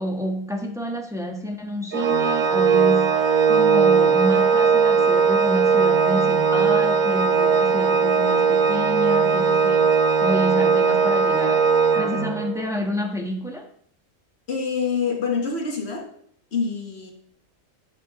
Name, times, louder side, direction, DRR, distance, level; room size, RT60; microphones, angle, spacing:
voice 1, 0.0-11.7 11.9-13.7, equal, ahead, 2 dB, 1.2 m, -29 dB
Organ, 1.9-12.7, right 5 dB, 40° right, 0.8 m, -19 dB
voice 2, 14.5-16.1 16.5-17.1, left 5 dB, 55° left, 2 dB, 1.6 m, -26 dB
11.5 x 7.5 x 3.1 m, 0.62 s
omnidirectional pair, 1.4 m